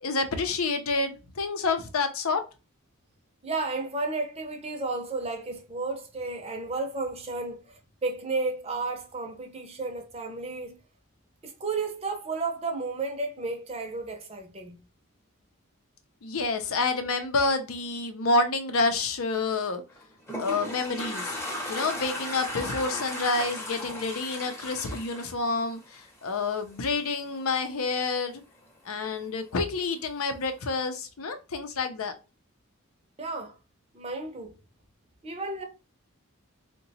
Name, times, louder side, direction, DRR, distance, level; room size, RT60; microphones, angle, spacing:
voice 1, 0.0-2.4 16.2-19.8 20.4-21.4 21.7-28.4 28.9-32.1, left 3 dB, 85° left, 0.6 m, -28 dB
voice 2, 3.4-10.8 11.4-14.8 33.2-33.5 33.9-34.6 35.2-35.6, right 3 dB, 30° right, 0.6 m, -33 dB
Toilet flush, 19.9-26.3, left 1 dB, 10° left, 0.7 m, -36 dB
2.8 x 2.2 x 4.0 m
head